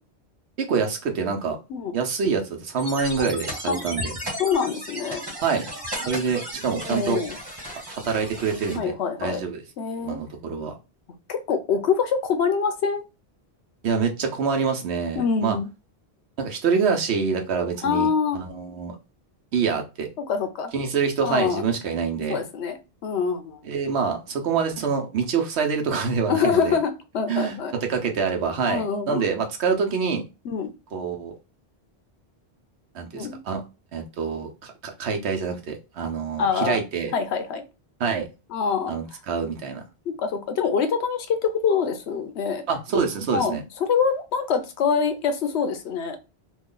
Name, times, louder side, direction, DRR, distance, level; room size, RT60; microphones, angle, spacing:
voice 1, 0.6-1.6 1.9-4.1 5.4-5.7 6.1-7.2 7.9-8.9 9.2-9.6 10.0-10.7 13.8-15.6 16.4-19.0 19.5-20.1 20.7-22.4 23.6-26.8 27.3-27.6 27.9-30.2 30.9-31.3 32.9-33.6 33.9-37.1 38.0-38.3 38.9-39.8 42.7-43.6, right 5 dB, 85° right, 1.0 m, -26 dB
sound 1, 2.8-8.8, equal, 25° right, 1.0 m, -35 dB
voice 2, 4.4-5.2 6.8-7.4 8.7-9.4 9.8-10.2 11.3-13.0 15.2-15.7 17.8-18.4 20.3-20.7 21.2-21.6 22.3-22.8 23.0-23.6 26.3-27.7 28.7-29.3 30.4-30.7 33.1-33.4 36.4-36.8 37.1-37.6 38.5-38.9 40.1-42.6 43.3-46.2, left 6 dB, 90° left, 0.9 m, -25 dB
3.0 x 2.3 x 3.7 m
omnidirectional pair, 1.1 m